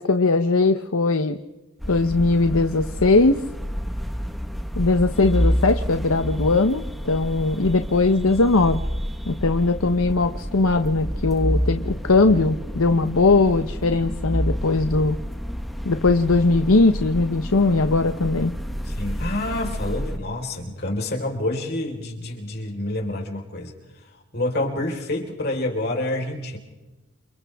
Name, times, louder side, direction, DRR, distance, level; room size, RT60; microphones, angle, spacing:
voice 1, 0.0-1.4 1.9-3.4 4.8-8.8 9.3-15.2 15.8-18.5, left 3 dB, 80° left, 8 dB, 1.0 m, -20 dB
sound 1, 1.8-20.2, equal, ahead, 1.4 m, -29 dB
voice 2, 18.8-23.7 24.0-26.6, left 1 dB, 45° left, 2 dB, 4.6 m, -28 dB
29.0 x 28.5 x 3.6 m, 1.1 s
head